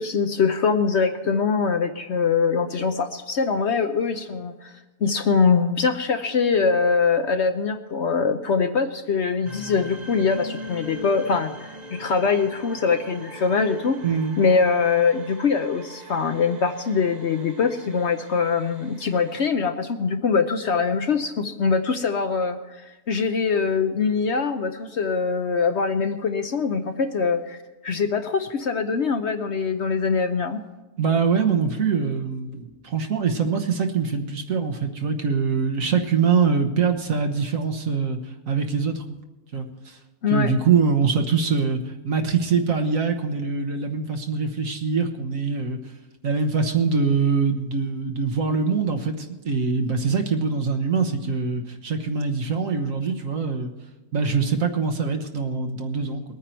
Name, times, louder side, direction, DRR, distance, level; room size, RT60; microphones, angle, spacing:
voice 1, 0.0-4.7 5.0-14.0 14.4-30.6 40.2-40.5, left 5 dB, 55° left, 7 dB, 0.9 m, -23 dB
sound 1, 9.4-19.5, equal, 30° right, 1.1 m, -42 dB
voice 2, 14.0-14.4 31.0-38.2 38.5-39.2 39.5-40.0 40.3-45.8 46.2-53.7 54.1-56.2, right 5 dB, 65° right, 5 dB, 1.5 m, -23 dB
21.0 x 9.3 x 4.5 m, 1.1 s
omnidirectional pair, 1.6 m